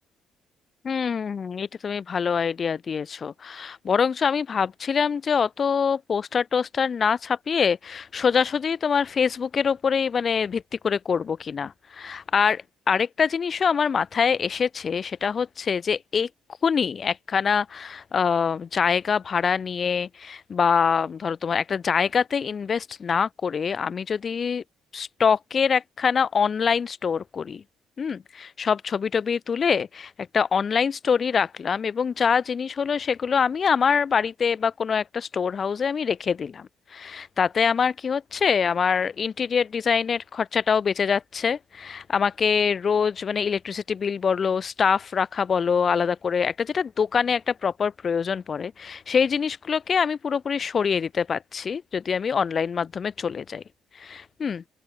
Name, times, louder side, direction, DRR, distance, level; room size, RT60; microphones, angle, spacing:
voice 1, 0.8-16.3 16.6-24.6 24.9-27.6 28.0-53.6 54.0-54.6, left 6 dB, 35° left, 1.6 m, -24 dB
open air
cardioid pair, 135°, 0 cm